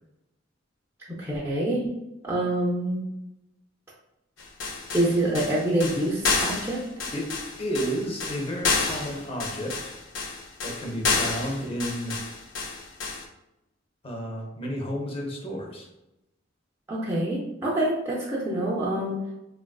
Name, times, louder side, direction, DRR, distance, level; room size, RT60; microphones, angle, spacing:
voice 1, 1.2-1.9 2.2-3.0 4.9-6.8 16.9-19.2, right 1 dB, 15° right, -7 dB, 0.5 m, -26 dB
sound 1, 4.4-13.2, left 4 dB, 70° left, 0.5 m, -30 dB
voice 2, 7.6-9.9 10.6-12.1 14.0-15.9, equal, 30° left, 0 dB, 0.6 m, -31 dB
3.3 x 2.3 x 2.2 m, 0.90 s
head